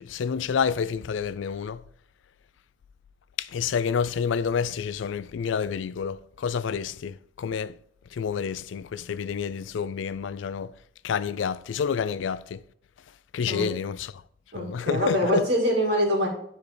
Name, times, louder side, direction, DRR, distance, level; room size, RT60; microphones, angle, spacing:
voice 1, 0.0-1.8 3.4-7.8 8.1-10.7 11.0-12.6 13.3-14.1 14.5-15.5, left 6 dB, 80° left, 0.4 m, -29 dB
voice 2, 14.5-16.3, equal, 60° right, 2.1 m, -24 dB
11.5 x 4.0 x 3.4 m
head